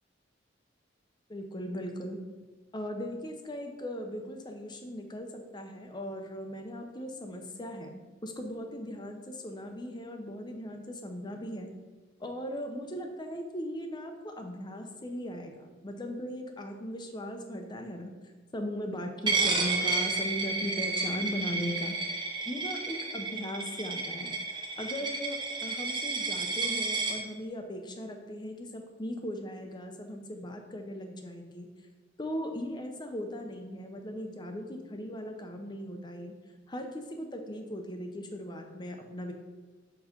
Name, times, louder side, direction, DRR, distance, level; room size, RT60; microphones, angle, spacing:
voice 1, 1.3-2.2 2.7-11.7 12.2-18.1 18.5-21.9 22.4-31.7 32.2-36.3 36.7-39.3, equal, 25° left, 4 dB, 0.7 m, -38 dB
Coin (dropping), 19.3-27.2, right 3 dB, 25° right, 0.8 m, -31 dB
7.2 x 3.2 x 5.1 m, 1.3 s
head